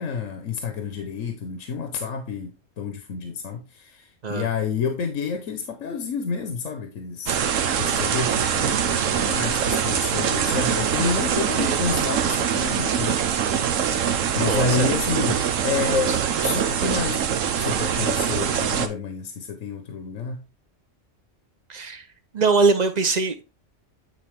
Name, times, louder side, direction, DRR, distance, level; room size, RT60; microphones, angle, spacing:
voice 1, 0.0-7.4 7.7-13.2 13.8-17.3 17.5-20.4, left 5 dB, 80° left, 1.3 m, -29 dB
sound 1, 7.3-18.9, right 8 dB, 80° right, 1.2 m, -23 dB
voice 2, 14.3-14.9 16.1-16.2 16.4-16.5 21.7-22.0 22.3-23.4, right 4 dB, 40° right, 0.9 m, -22 dB
9.5 x 4.2 x 3.6 m
omnidirectional pair, 1.3 m